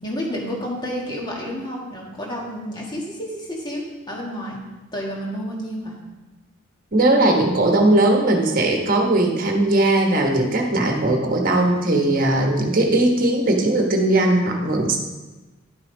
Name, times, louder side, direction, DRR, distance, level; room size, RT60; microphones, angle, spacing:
voice 1, 0.0-4.6 4.9-5.9, equal, 20° left, -2 dB, 1.6 m, -30 dB
voice 2, 6.9-15.0, right 2 dB, 45° right, 2 dB, 1.2 m, -19 dB
11.0 x 5.8 x 3.9 m, 1.2 s
head